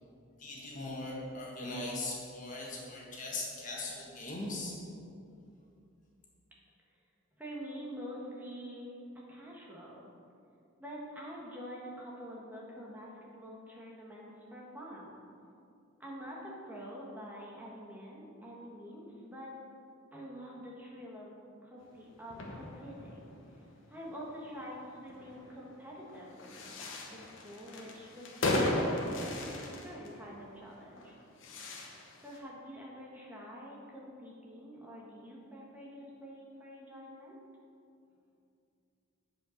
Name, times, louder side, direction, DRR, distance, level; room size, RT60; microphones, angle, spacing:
voice 1, 0.4-4.8, left 2 dB, 35° left, -4 dB, 1.7 m, -39 dB
voice 2, 7.4-10.1 10.8-15.2 16.0-19.5 20.1-21.3 21.6-23.3 23.6-23.7 23.9-31.1 32.2-37.4, equal, 10° right, -4 dB, 1.4 m, -46 dB
sound 1, 22.2-32.4, left 2 dB, 60° left, 1.1 m, -37 dB
8.1 x 5.1 x 6.4 m, 2.5 s
head